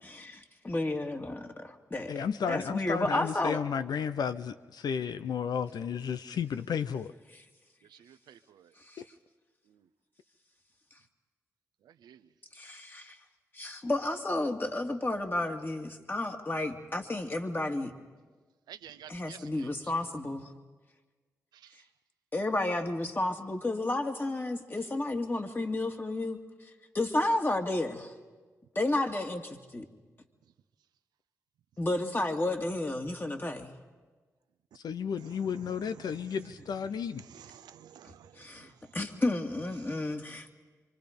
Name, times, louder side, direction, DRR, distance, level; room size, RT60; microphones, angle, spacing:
voice 1, 0.0-2.1 2.5-3.6 8.8-9.0 12.5-13.2 13.5-17.9 19.1-20.5 22.3-28.1 28.7-29.9 31.8-33.7 38.4-40.5, left 2 dB, 30° left, 2.4 m, -32 dB
voice 2, 2.1-7.1 34.7-37.2, left 7 dB, 75° left, 0.6 m, -33 dB
voice 3, 7.9-8.7 9.7-9.8 11.8-12.3 18.7-19.7 21.5-21.8 35.2-36.3 37.2-39.0, right 10 dB, 85° right, 0.7 m, -52 dB
26.5 x 24.5 x 5.3 m
supercardioid pair, 40°, 7 cm